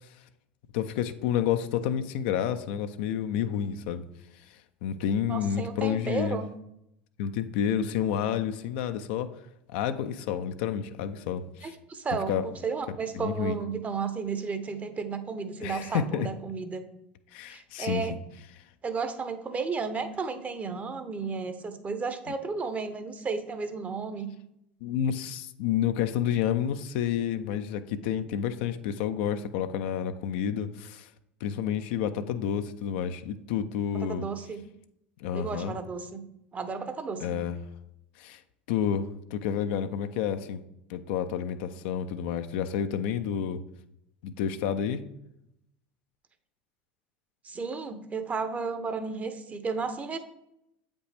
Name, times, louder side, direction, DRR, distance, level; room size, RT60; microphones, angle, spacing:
voice 1, 0.7-4.0 4.8-6.4 7.2-9.3 9.7-11.7 12.3-12.4 13.1-13.6 15.6-16.3 17.3-18.1 24.8-31.1 31.4-34.3 35.2-35.8 37.2-37.6 38.2-38.4 38.7-40.6 40.9-43.6 44.2-45.0, left 9 dB, 65° left, 9 dB, 0.5 m, -29 dB
voice 2, 5.3-6.5 11.6-16.8 17.5-18.1 18.8-24.3 33.9-34.6 35.3-36.2 36.5-37.4 47.4-50.2, right 5 dB, 25° right, 9 dB, 0.8 m, -33 dB
7.9 x 5.2 x 3.4 m, 0.81 s
hypercardioid pair, 80°, 6 cm